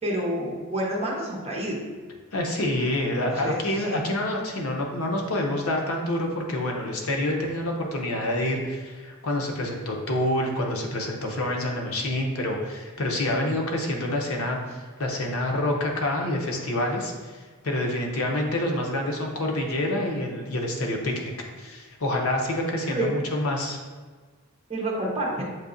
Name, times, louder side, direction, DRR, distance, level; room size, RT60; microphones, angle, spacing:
voice 1, 0.0-1.8 3.4-3.6 3.9-4.0 22.9-23.1 24.7-25.4, right 1 dB, 30° right, -3 dB, 0.9 m, -28 dB
voice 2, 2.3-21.3 21.6-23.8, left 1 dB, 70° left, 1 dB, 0.7 m, -27 dB
7.5 x 2.7 x 2.6 m, 1.4 s
head